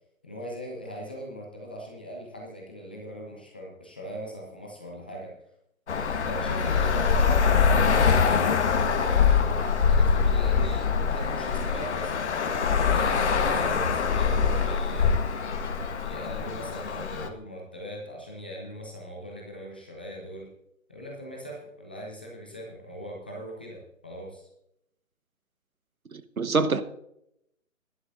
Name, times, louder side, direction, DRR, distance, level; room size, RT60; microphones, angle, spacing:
voice 1, 0.2-5.3 6.2-7.5 7.8-9.3 9.9-12.1 12.8-15.2 16.0-20.5 20.9-24.5, equal, 10° left, 0.5 m, -40 dB
Traffic noise roadway noise, 5.9-17.3, left 6 dB, 55° left, 1.5 m, -24 dB
voice 2, 26.1-26.8, right 4 dB, 80° right, 1.3 m, -25 dB
17.0 x 11.5 x 2.6 m
figure-of-eight pair, 140°, 42 cm